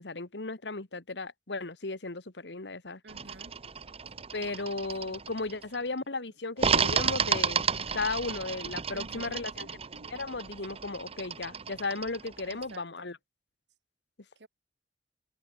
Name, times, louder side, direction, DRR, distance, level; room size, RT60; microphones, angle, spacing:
voice 1, 0.0-3.0 4.3-9.7 10.0-13.2, left 3 dB, 80° left, 1.7 m, -35 dB
voice 2, 3.0-3.6 4.7-5.2 5.5-5.9 6.1-6.2 8.9-10.1 10.7-10.8 12.4-13.1 14.4-14.5, right 2 dB, 85° right, 2.5 m, -52 dB
sound 1, 3.1-5.8 6.6-12.8, right 6 dB, 35° right, 0.9 m, -32 dB
head